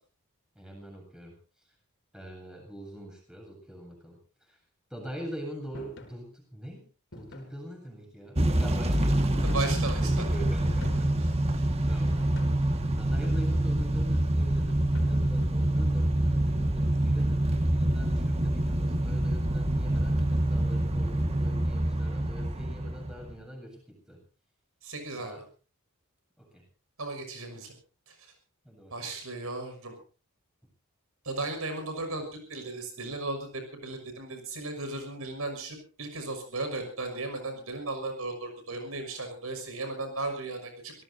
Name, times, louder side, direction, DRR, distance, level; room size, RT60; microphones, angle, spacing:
voice 1, 0.5-1.3 2.1-4.6 4.9-6.9 7.1-11.3 11.9-12.2 13.0-24.2 25.2-25.5 26.4-26.6 28.6-29.1, equal, 5° right, 1 dB, 8.0 m, -43 dB
sound 1, 5.7-6.2 7.1-7.6 8.4-9.0 9.5-9.9 10.7-11.3 12.2-12.7 13.2-13.9 14.9-15.5, left 1 dB, 55° left, 4.8 m, -48 dB
Motor vehicle (road) / Engine starting / Accelerating revving vroom, 8.4-23.3, right 1 dB, 30° right, 1.8 m, -26 dB
voice 2, 9.4-10.0 11.2-11.6 24.8-25.3 27.0-27.7 28.1-28.2 28.9-30.0 31.2-40.9, right 2 dB, 75° right, 6 dB, 6.2 m, -36 dB
27.0 x 18.0 x 2.8 m, 0.36 s
head